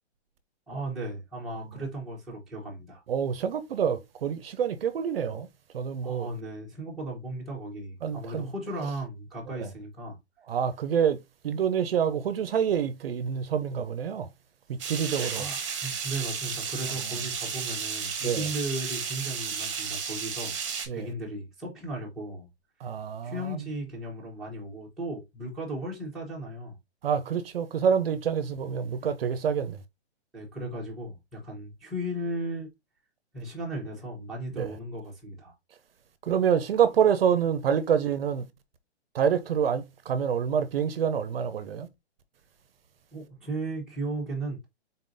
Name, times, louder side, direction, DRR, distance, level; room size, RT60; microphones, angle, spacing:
voice 1, 0.7-3.0 6.0-10.2 15.3-20.6 20.9-22.5 23.2-26.8 29.0-29.1 30.3-32.7 33.3-35.5 43.1-44.7, right 1 dB, ahead, 0.9 m, -36 dB
voice 2, 3.1-5.5 5.7-6.3 8.0-8.5 9.6-9.7 10.5-11.2 11.4-14.3 14.7-15.5 16.9-17.2 18.2-18.5 20.9-21.1 22.8-23.7 27.0-29.8 34.5-34.7 36.2-38.5 39.1-41.9, right 7 dB, 60° right, 0.6 m, -27 dB
sound 1, 14.8-20.9, right 6 dB, 30° right, 1.0 m, -33 dB
4.0 x 3.8 x 2.5 m
hypercardioid pair, 170°, 33 cm